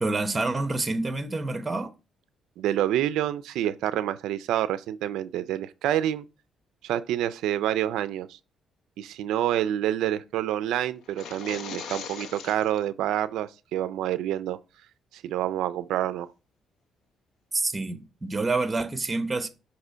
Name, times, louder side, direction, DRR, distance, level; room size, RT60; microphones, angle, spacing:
voice 1, 0.0-1.9 17.5-19.5, right 3 dB, 20° right, 0.8 m, -27 dB
voice 2, 2.6-6.2 6.8-8.4 9.0-14.6 15.1-16.3, right 12 dB, 85° right, 0.3 m, -27 dB
sound 1, 11.0-12.8, left 6 dB, 75° left, 0.7 m, -39 dB
6.1 x 2.8 x 5.4 m
cardioid pair, 90°, 0 cm